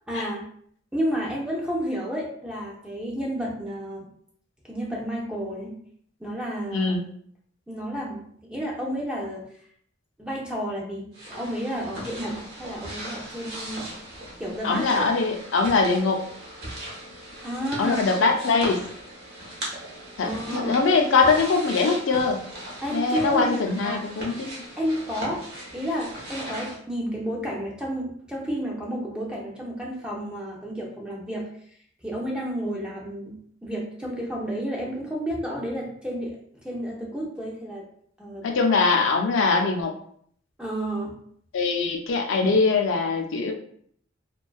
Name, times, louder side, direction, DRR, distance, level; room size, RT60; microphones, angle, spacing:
voice 1, 0.1-0.5 0.9-4.1 4.7-5.8 6.2-6.9 7.7-9.4 10.2-13.9 14.4-15.0 17.4-18.0 20.2-20.8 22.8-23.6 23.8-24.0 24.8-25.4 25.7-31.5 32.0-37.8 38.2-38.6 40.6-41.2, equal, 5° right, -3 dB, 0.4 m, -31 dB
voice 2, 6.7-7.0 14.6-16.2 17.8-18.8 20.2-22.4 22.9-24.5 38.4-39.9 41.5-43.5, left 4 dB, 80° left, 3 dB, 0.4 m, -22 dB
sound 1, 11.1-26.8, right 1 dB, 50° right, 0.8 m, -38 dB
2.5 x 2.2 x 2.2 m, 0.62 s
head